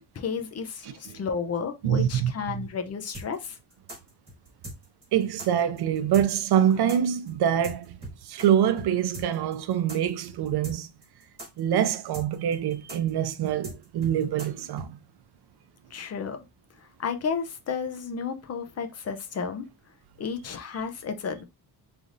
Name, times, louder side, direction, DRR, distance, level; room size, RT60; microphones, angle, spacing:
voice 1, 0.2-3.6 15.9-16.4 17.0-19.7 20.2-21.5, left 6 dB, 40° left, 0.5 m, -32 dB
voice 2, 0.8-1.2 1.8-2.6 5.1-8.0 8.2-10.9 11.6-14.9, right 10 dB, 70° right, 0.5 m, -25 dB
sound 1, 3.1-8.5 8.8-8.9 9.1-14.9, right 1 dB, 15° right, 2.1 m, -40 dB
3.7 x 3.4 x 2.5 m
wide cardioid pair, 160°, 40 cm